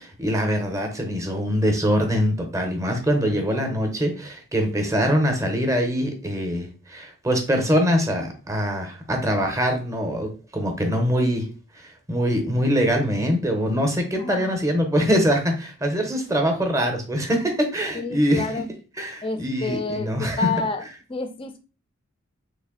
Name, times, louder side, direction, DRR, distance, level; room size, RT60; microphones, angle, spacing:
voice 1, 0.0-11.5 11.8-18.7 19.0-20.5, equal, 15° right, 4 dB, 0.6 m, -23 dB
voice 2, 14.2-14.5 17.9-18.7 19.2-20.8 21.1-21.6, left 4 dB, 25° left, 8 dB, 0.4 m, -29 dB
3.2 x 2.5 x 3.6 m, 0.34 s
head